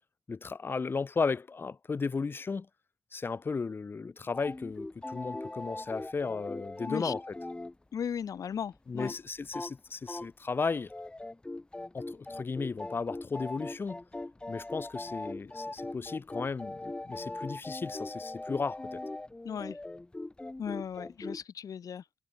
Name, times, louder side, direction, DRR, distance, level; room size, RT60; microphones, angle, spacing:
voice 1, 0.3-2.7 3.1-7.3 8.9-10.9 11.9-14.0 14.5-19.0, left 4 dB, 35° left, 2.8 m, -35 dB
sound 1, 4.3-7.7 8.0-8.1 8.3-8.4 8.7-9.2 9.5-9.8 10.1-10.5 10.9-21.4, left 2 dB, 15° left, 4.3 m, -40 dB
voice 2, 7.9-9.2 19.4-19.8 20.6-22.0, left 8 dB, 60° left, 7.7 m, -36 dB
cardioid pair, 125°, 7 cm